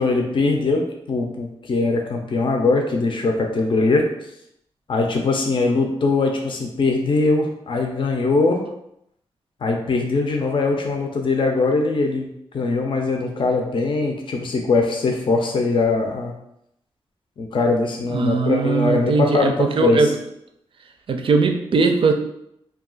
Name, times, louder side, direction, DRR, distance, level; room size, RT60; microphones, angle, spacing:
voice 1, 0.0-4.0 4.9-8.6 9.6-16.3 17.4-20.1, left 3 dB, 55° left, 2 dB, 0.5 m, -21 dB
voice 2, 18.1-20.1 21.1-22.1, right 4 dB, 55° right, 5 dB, 0.4 m, -19 dB
2.3 x 2.3 x 3.8 m, 0.77 s
cardioid pair, 55°, 10 cm